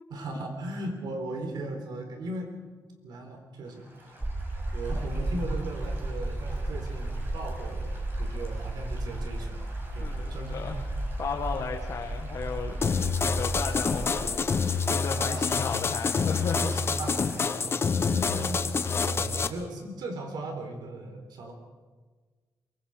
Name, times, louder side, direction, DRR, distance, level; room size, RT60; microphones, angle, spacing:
voice 1, 0.1-2.5 3.0-4.2 4.7-10.9 15.1-15.5 16.6-21.5, right 2 dB, 85° right, 4 dB, 4.0 m, -38 dB
Stream / Gurgling / Trickle dribble, 3.6-17.5, right 1 dB, 30° right, 5.6 m, -49 dB
sound 1, 4.2-14.6, right 1 dB, 15° right, 1.0 m, -34 dB
voice 2, 10.0-10.8 11.2-12.8 13.2-16.6, left 5 dB, 55° left, 1 dB, 1.6 m, -34 dB
sound 2, 12.8-19.5, left 5 dB, 35° left, 0.9 m, -27 dB
23.5 x 22.5 x 5.0 m, 1.4 s
wide cardioid pair, 150°, 7 cm